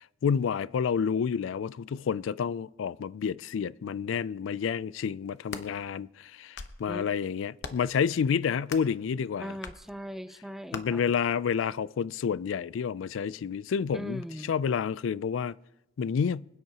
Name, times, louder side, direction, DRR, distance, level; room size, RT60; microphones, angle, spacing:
voice 1, 0.2-9.6 10.7-15.6 16.0-16.5, left 6 dB, 90° left, 0.3 m, -29 dB
sound 1, 5.3-5.7 6.3-6.9 7.6-7.9 8.7-9.0 9.6-9.8 10.7-10.8, left 5 dB, 60° left, 0.9 m, -40 dB
voice 2, 9.4-11.1 13.9-14.6, equal, ahead, 0.5 m, -39 dB
25.5 x 9.5 x 2.9 m
head